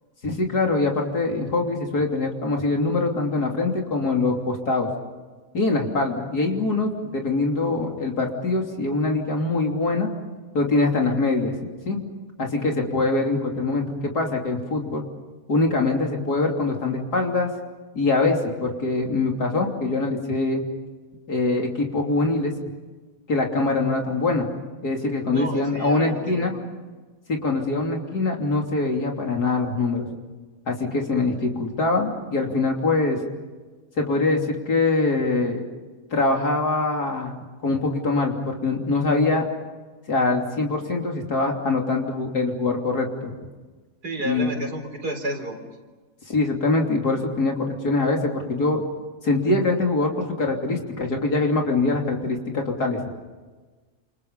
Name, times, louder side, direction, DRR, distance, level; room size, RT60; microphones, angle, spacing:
voice 1, 0.2-4.9 5.5-10.1 10.5-11.6 11.9-12.0 12.4-15.0 15.5-17.5 17.9-20.6 21.3-22.6 23.3-24.5 24.8-26.5 27.3-30.1 30.7-33.2 34.0-35.6 36.1-37.3 37.6-39.5 40.1-43.3 44.3-44.6 46.3-48.8 49.2-53.0, left 3 dB, 80° left, 1 dB, 3.6 m, -23 dB
voice 2, 25.3-26.6 44.0-45.6, right 1 dB, 85° right, 4 dB, 4.7 m, -31 dB
29.0 x 28.0 x 5.4 m, 1.3 s
omnidirectional pair, 1.6 m